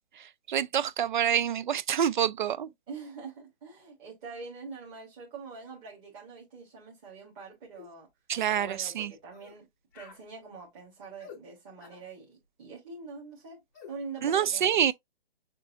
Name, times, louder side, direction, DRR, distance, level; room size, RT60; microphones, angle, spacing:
voice 1, 0.5-2.7 8.3-9.1 14.2-14.9, right 9 dB, 55° right, 0.4 m, -26 dB
voice 2, 2.9-8.1 8.5-9.7 9.9-13.6 13.9-14.8, right 4 dB, 15° right, 1.3 m, -44 dB
sound 1, 7.8-7.9 8.3-8.5 9.3-9.6 9.9-10.2 11.2-11.4 11.8-12.0 13.7-13.9, left 6 dB, 20° left, 0.6 m, -49 dB
6.5 x 2.6 x 2.6 m
hypercardioid pair, 160°, 30 cm